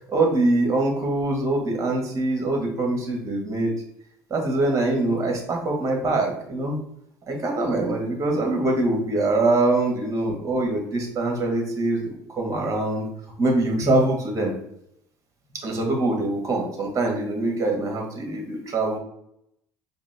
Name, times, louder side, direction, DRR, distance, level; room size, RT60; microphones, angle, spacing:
voice 1, 0.1-3.7 4.3-6.8 7.3-13.1 13.4-14.5 15.5-19.0, right 2 dB, 35° right, 1 dB, 1.3 m, -23 dB
4.9 x 2.1 x 3.3 m, 0.76 s
supercardioid pair, 80°, 9 cm